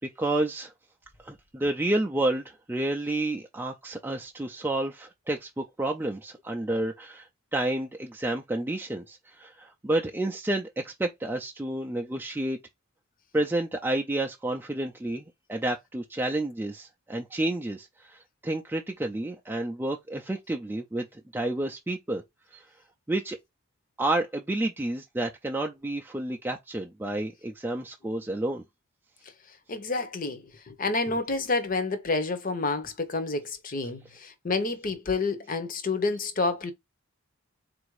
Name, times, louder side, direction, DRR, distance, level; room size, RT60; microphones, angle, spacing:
voice 1, 0.2-0.7 1.2-12.6 13.3-22.2 22.5-22.7 23.1-23.4 24.0-28.6, right 1 dB, 10° right, 0.4 m, -30 dB
voice 2, 29.7-36.7, left 3 dB, 40° left, 0.8 m, -29 dB
4.0 x 2.5 x 4.7 m
head